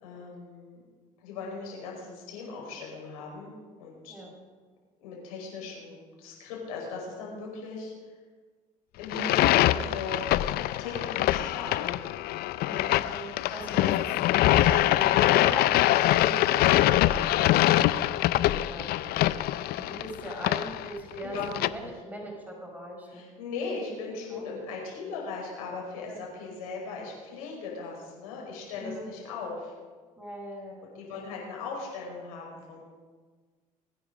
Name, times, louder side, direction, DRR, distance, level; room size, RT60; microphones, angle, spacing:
voice 1, 0.0-0.8 1.2-3.5 3.8-4.1 5.0-7.9 9.0-10.3 10.8-11.9 13.4-13.6 16.1-16.6 21.2-21.4 21.8-21.9 23.1-29.7 30.9-32.8, left 4 dB, 80° left, -2 dB, 5.3 m, -38 dB
sound 1, 9.0-21.7, left 14 dB, 60° left, 0.6 m, -24 dB
voice 2, 12.6-17.2 17.7-17.8 18.7-19.4 19.7-23.3 24.3-24.4 26.1-26.2 28.8-29.1 30.2-31.2, right 1 dB, 10° right, -1 dB, 5.3 m, -41 dB
22.0 x 9.7 x 5.1 m, 1.5 s
hypercardioid pair, 60°, 18 cm